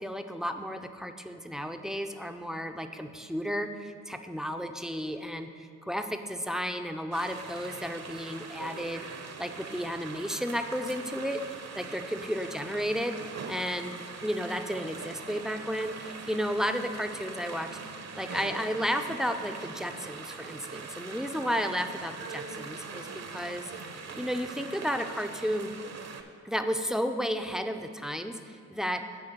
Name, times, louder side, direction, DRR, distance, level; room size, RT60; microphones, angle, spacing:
voice 1, 0.0-9.1 9.4-13.2 13.5-13.9 14.2-17.7 18.2-23.7 24.2-25.7 26.4-29.1, equal, ahead, 7 dB, 0.5 m, -33 dB
sound 1, 7.1-26.2, right 5 dB, 45° right, 0.8 m, -42 dB
9.5 x 3.6 x 6.7 m, 2.3 s
supercardioid pair, 45°, 38 cm